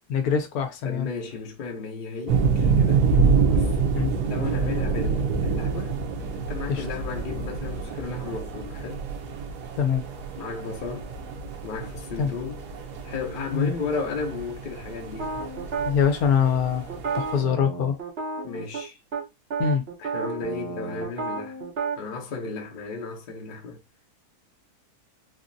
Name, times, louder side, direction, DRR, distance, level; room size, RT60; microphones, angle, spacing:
voice 1, 0.1-1.1 3.9-4.1 6.7-6.8 9.7-10.0 12.2-12.3 13.5-13.7 15.8-18.0 19.6-19.9, left 7 dB, 75° left, 1.0 m, -24 dB
voice 2, 0.8-3.1 3.5-3.8 4.2-5.9 6.3-9.0 10.4-11.1 11.6-12.6 13.0-15.3 18.4-19.0 20.0-21.6 22.0-23.8, left 4 dB, 50° left, 0.6 m, -34 dB
sound 1, 2.3-17.4, right 5 dB, 85° right, 1.2 m, -27 dB
sound 2, 15.2-15.9 16.9-18.9 19.1-19.2 19.5-22.0, right 4 dB, 55° right, 0.7 m, -31 dB
3.6 x 2.0 x 2.5 m
omnidirectional pair, 1.7 m